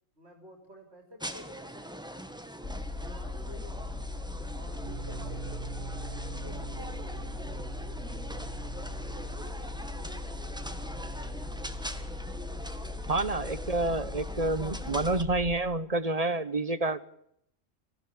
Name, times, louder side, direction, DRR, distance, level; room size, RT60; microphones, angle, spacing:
voice 1, 0.2-2.3 3.0-4.1 4.5-10.1, equal, 55° right, 2 dB, 4.2 m, -52 dB
sound 1, 1.2-15.2, equal, 5° right, 1.7 m, -43 dB
sound 2, 2.6-15.6, left 3 dB, 30° left, 2.7 m, -39 dB
sound 3, 4.8-15.0, right 9 dB, 80° right, 2.1 m, -47 dB
voice 2, 13.1-17.1, right 2 dB, 30° right, 16 dB, 1.1 m, -28 dB
25.0 x 16.0 x 8.5 m, 0.73 s
omnidirectional pair, 1.3 m